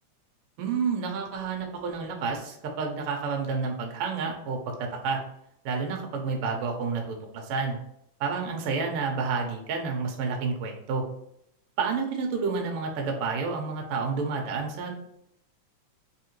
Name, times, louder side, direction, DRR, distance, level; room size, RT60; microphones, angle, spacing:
voice 1, 0.6-5.2 5.6-7.8 8.2-11.1 11.8-14.9, right 5 dB, 75° right, 2 dB, 1.3 m, -30 dB
4.6 x 2.8 x 3.0 m, 0.75 s
omnidirectional pair, 3.5 m